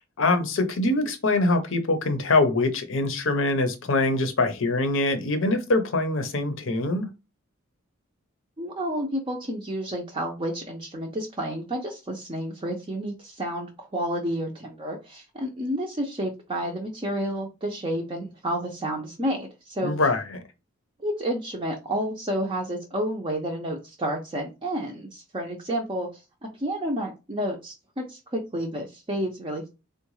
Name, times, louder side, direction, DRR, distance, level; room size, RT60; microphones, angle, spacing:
voice 1, 0.2-7.1 19.8-20.4, left 2 dB, 65° left, 8 dB, 0.6 m, -24 dB
voice 2, 8.6-19.9 21.0-26.1 26.4-29.7, equal, 25° right, 0 dB, 0.5 m, -30 dB
3.7 x 2.2 x 3.0 m, 0.27 s
head